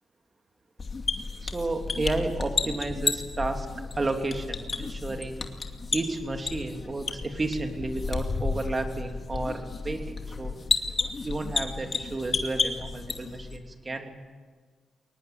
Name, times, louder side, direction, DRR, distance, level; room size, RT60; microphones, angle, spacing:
sound 1, 0.8-13.6, left 4 dB, 45° left, 2.4 m, -32 dB
voice 1, 1.4-3.7 4.0-5.5 5.9-10.6 11.2-14.1, right 2 dB, 35° right, 5 dB, 3.0 m, -32 dB
23.0 x 19.5 x 9.0 m, 1.5 s
supercardioid pair, 50°, 0 cm